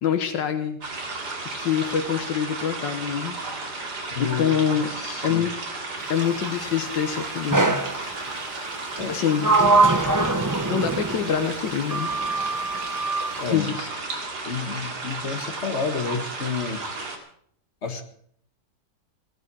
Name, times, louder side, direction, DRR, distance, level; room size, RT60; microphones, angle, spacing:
voice 1, 0.0-0.8 1.6-3.5 4.2-4.9 5.2-5.5 6.1-7.8 9.1-9.5 10.2-10.3 10.7-12.1 13.5-13.9 14.5-14.6, left 8 dB, 80° left, 6 dB, 1.8 m, -25 dB
sound 1, 0.8-17.2, right 3 dB, 65° right, 3.1 m, -33 dB
voice 2, 4.1-4.6 5.0-5.4 9.0-9.2 13.4-13.7 14.5-16.8 17.8-18.0, left 5 dB, 40° left, 6 dB, 1.8 m, -30 dB
Sliding door, 7.5-8.0 9.0-11.4 11.9-13.3, right 3 dB, 15° right, 0.6 m, -22 dB
16.5 x 12.5 x 6.3 m, 0.65 s
omnidirectional pair, 1.9 m